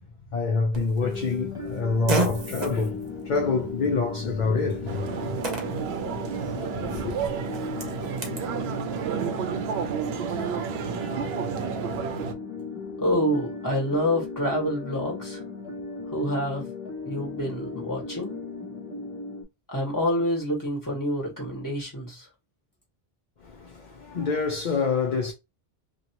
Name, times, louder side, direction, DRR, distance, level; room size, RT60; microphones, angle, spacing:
voice 1, 0.3-5.4 6.6-7.1 23.4-25.3, left 4 dB, 50° left, 0.7 m, -27 dB
Fart, 0.7-8.5, right 2 dB, 45° right, 0.9 m, -35 dB
sound 1, 1.0-19.4, left 4 dB, 5° right, 0.8 m, -37 dB
sound 2, 4.9-12.3, right 7 dB, 80° right, 0.8 m, -31 dB
voice 2, 13.0-15.4 16.1-16.7 17.0-18.4 19.7-22.3, equal, 20° left, 1.5 m, -27 dB
2.8 x 2.7 x 2.9 m
omnidirectional pair, 1.0 m